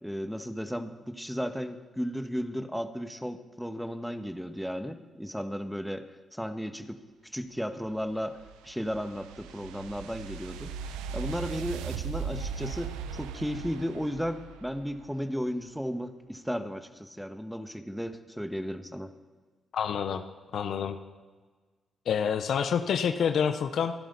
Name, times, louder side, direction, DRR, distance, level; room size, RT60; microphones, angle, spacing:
voice 1, 0.0-6.1 6.3-7.0 7.3-8.4 8.6-10.7 11.1-19.1, equal, ahead, 8 dB, 1.6 m, -34 dB
sound 1, 7.9-15.2, right 6 dB, 85° right, 0.8 m, -38 dB
voice 2, 19.7-20.2 20.5-21.0 22.1-23.9, left 7 dB, 65° left, 9 dB, 0.9 m, -27 dB
27.0 x 11.5 x 4.2 m, 1.4 s
hypercardioid pair, 45°, 0 cm